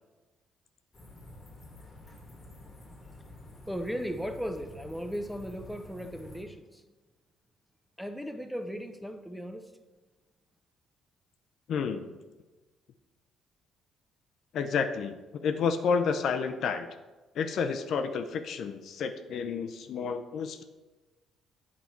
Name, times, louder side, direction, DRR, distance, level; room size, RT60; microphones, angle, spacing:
sound 1, 0.9-6.4, left 1 dB, 30° left, 1.4 m, -49 dB
voice 1, 3.7-6.8 8.0-9.7, equal, ahead, 7 dB, 0.6 m, -37 dB
voice 2, 11.7-12.1 14.5-16.9 17.3-20.6, left 5 dB, 65° left, 8 dB, 0.5 m, -30 dB
8.3 x 4.2 x 4.5 m, 1.2 s
cardioid pair, 110°, 0 cm